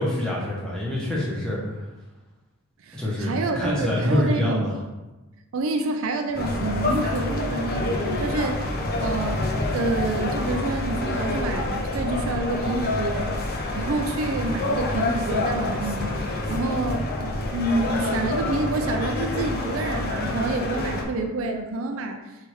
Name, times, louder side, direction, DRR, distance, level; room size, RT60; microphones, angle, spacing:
voice 1, 0.0-1.9 2.9-4.8, left 1 dB, 5° left, -6 dB, 1.1 m, -26 dB
voice 2, 2.8-4.7 5.5-9.4 9.7-22.2, right 2 dB, 65° right, 4 dB, 0.4 m, -28 dB
sound 1, 6.3-21.0, left 2 dB, 45° left, 0.6 m, -27 dB
3.5 x 3.3 x 4.5 m, 1.1 s
head